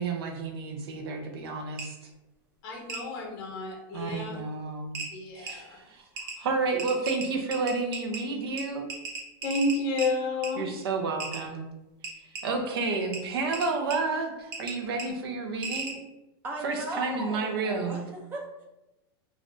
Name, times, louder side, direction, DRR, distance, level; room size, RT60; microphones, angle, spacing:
voice 1, 0.0-2.0 3.9-4.9 5.3-6.0 6.4-8.9 10.6-11.6 12.4-16.0 16.6-18.0, right 4 dB, 80° right, 4 dB, 0.6 m, -30 dB
sound 1, 1.8-1.9 2.9-3.0 4.4-4.5 4.9-5.1 5.5-5.6 6.2-6.3 6.8-8.2 8.6-8.7 8.9-10.1 10.4-10.5 11.2-11.4 12.0-12.4 13.1-13.2 13.5-14.0 14.5-14.7 15.0-15.1 15.6-15.9, right 4 dB, 50° right, 0.9 m, -35 dB
voice 2, 2.6-4.4 5.1-5.8 9.4-10.7, left 2 dB, 35° left, 0 dB, 0.6 m, -30 dB
voice 3, 16.4-18.6, right 2 dB, 15° right, -1 dB, 0.5 m, -37 dB
3.3 x 2.4 x 2.5 m, 0.95 s
supercardioid pair, 170°, 13 cm